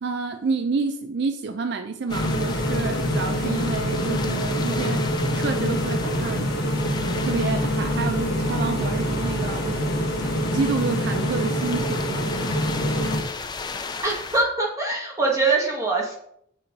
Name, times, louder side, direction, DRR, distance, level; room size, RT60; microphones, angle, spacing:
voice 1, 0.0-6.5 7.2-9.8 10.5-12.4, right 4 dB, 55° right, 7 dB, 0.4 m, -29 dB
sound 1, 2.1-13.2, equal, 50° left, 1.1 m, -25 dB
sound 2, 2.1-14.4, left 4 dB, 20° left, 0.3 m, -36 dB
voice 2, 14.0-16.2, right 3 dB, 15° right, -2 dB, 1.2 m, -23 dB
6.7 x 3.8 x 4.6 m, 0.70 s
head